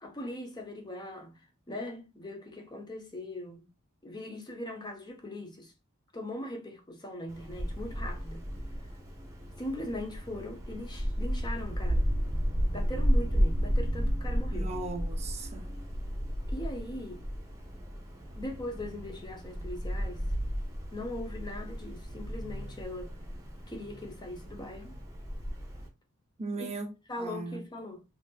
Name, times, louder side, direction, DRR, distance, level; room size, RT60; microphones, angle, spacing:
voice 1, 0.0-1.4 1.7-3.7 4.0-5.7 6.1-8.5 9.6-12.1 12.7-14.7 16.5-17.2 18.4-20.3 20.9-23.2 23.7-25.0 26.6-26.7 27.1-28.0, left 1 dB, 20° left, 0.8 m, -40 dB
Wind, 7.3-25.9, equal, 15° right, 0.9 m, -33 dB
voice 2, 14.5-15.7 26.4-27.6, right 3 dB, 30° right, 0.5 m, -38 dB
3.9 x 2.8 x 2.3 m
head